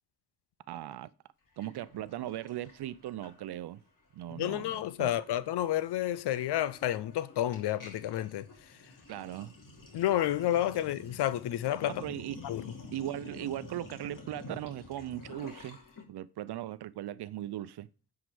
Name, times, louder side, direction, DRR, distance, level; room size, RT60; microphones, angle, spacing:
voice 1, 0.7-1.1 1.6-3.8 4.1-5.1 9.1-9.6 11.8-12.4 12.9-15.8 16.1-17.9, right 13 dB, 75° right, 0.7 m, -38 dB
Sink (filling or washing), 1.6-3.8 4.1-4.4 4.6-16.0, left 2 dB, 50° left, 3.1 m, -50 dB
voice 2, 4.4-8.5 9.9-12.0 12.4-12.7, left 12 dB, 75° left, 0.8 m, -30 dB
9.2 x 4.9 x 7.7 m
supercardioid pair, 40°, 40 cm